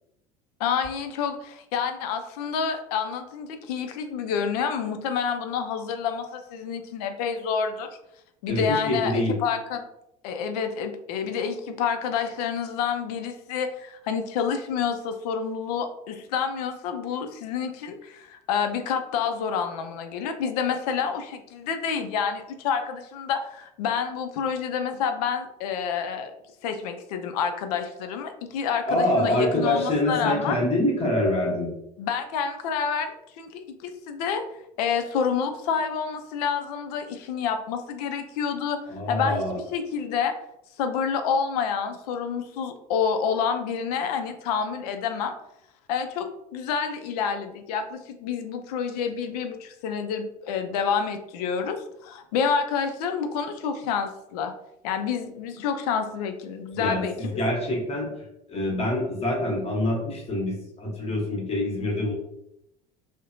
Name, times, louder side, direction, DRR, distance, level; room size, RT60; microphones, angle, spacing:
voice 1, 0.6-7.9 8.4-9.8 10.2-26.3 26.6-30.6 32.0-34.4 34.8-38.8 39.1-40.3 40.8-45.3 45.9-54.5 54.8-57.4, left 6 dB, 70° left, 7 dB, 0.4 m, -28 dB
voice 2, 8.5-9.3 28.9-31.7 38.9-39.6 56.7-58.1 58.5-62.1, left 1 dB, 30° left, -1 dB, 1.1 m, -25 dB
2.7 x 2.1 x 2.5 m, 0.80 s
hypercardioid pair, 75°, 20 cm